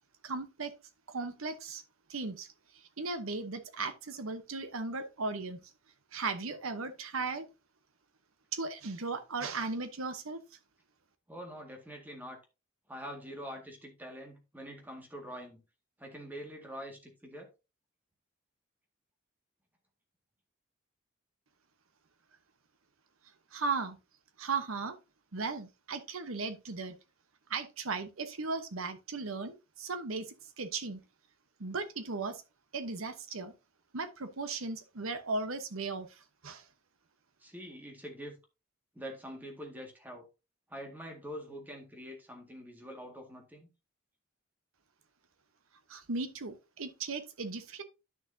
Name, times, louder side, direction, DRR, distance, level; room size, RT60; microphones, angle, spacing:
voice 1, 0.2-0.7 1.1-1.8 2.1-5.6 6.1-7.5 8.5-10.4 23.5-24.0 24.4-25.0 25.3-27.0 27.5-31.0 31.6-32.4 32.7-33.5 33.9-36.7 45.9-47.8, right 4 dB, 85° right, 1.0 m, -37 dB
voice 2, 11.3-12.4 12.9-15.6 16.0-17.5 37.4-38.4 38.9-40.3 40.7-43.7, equal, 10° right, 1.9 m, -45 dB
10.5 x 6.3 x 2.7 m
head